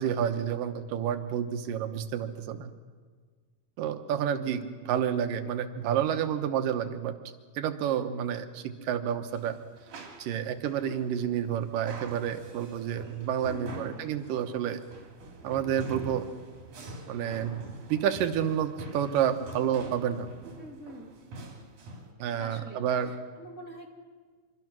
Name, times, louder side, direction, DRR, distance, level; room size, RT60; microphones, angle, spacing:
voice 1, 0.0-2.7 3.8-7.2 7.6-9.6 10.2-14.8 15.4-16.3 17.1-17.6 17.9-20.3 22.2-23.1, right 9 dB, 90° right, 8 dB, 2.8 m, -29 dB
voice 2, 4.3-4.7 13.5-14.0 20.6-21.1 22.4-23.9, equal, 25° left, 0 dB, 2.5 m, -46 dB
sound 1, 9.3-22.1, right 2 dB, 70° right, 4.4 m, -45 dB
25.5 x 23.5 x 6.2 m, 1.5 s
omnidirectional pair, 3.7 m